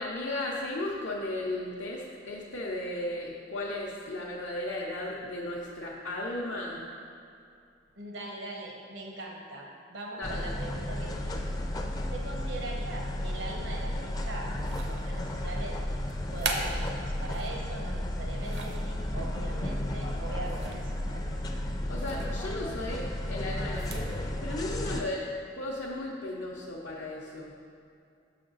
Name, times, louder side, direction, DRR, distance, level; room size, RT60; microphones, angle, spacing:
voice 1, 0.0-6.9 10.2-10.5 21.9-25.3 25.5-27.5, left 1 dB, 70° left, -5 dB, 0.6 m, -35 dB
voice 2, 8.0-11.4 12.1-15.8 16.3-21.7, right 2 dB, 85° right, -1 dB, 1.1 m, -41 dB
sound 1, 10.2-25.0, left 1 dB, 20° left, 0.4 m, -33 dB
sound 2, 14.6-15.2 16.1-17.6 18.2-18.9 20.4-21.0 21.2-21.4 22.0-22.3 23.6-24.1, right 3 dB, 65° right, 0.6 m, -38 dB
6.1 x 5.8 x 3.9 m, 2.4 s
head